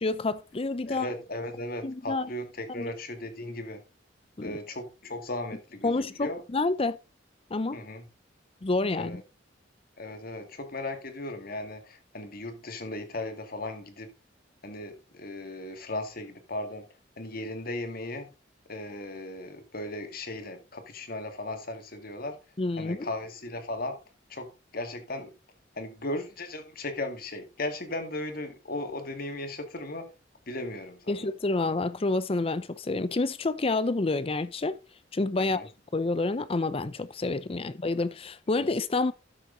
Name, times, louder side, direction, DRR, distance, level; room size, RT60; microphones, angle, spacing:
voice 1, 0.0-1.1 1.8-2.3 2.8-2.9 4.4-4.6 5.8-7.0 7.5-7.8 8.6-9.2 22.6-23.1 31.1-34.8 35.1-35.6 35.9-39.1, left 3 dB, 30° left, 0.5 m, -28 dB
voice 2, 0.9-3.8 4.4-6.4 7.7-8.1 9.0-9.2 10.0-14.1 14.6-16.9 17.2-18.3 18.7-22.4 22.8-24.0 24.3-25.3 25.8-30.1 30.5-31.3 35.4-35.7, left 1 dB, 50° left, 2.2 m, -37 dB
12.5 x 6.6 x 3.9 m
head